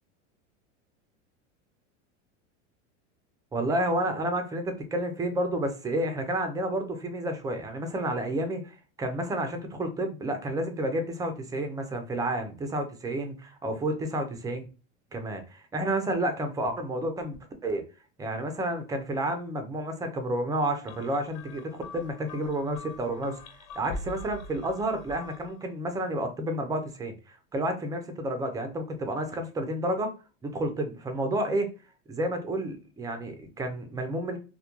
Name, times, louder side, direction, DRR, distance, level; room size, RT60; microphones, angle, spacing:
voice 1, 3.5-14.7 15.1-17.4 17.6-17.8 18.2-23.4 23.7-30.1 30.4-31.7 32.1-34.4, right 1 dB, 10° right, 6 dB, 0.3 m, -30 dB
sound 1, 20.9-25.6, left 2 dB, 45° left, 0.5 m, -43 dB
2.2 x 2.1 x 2.9 m, 0.33 s
hypercardioid pair, 110°, 37 cm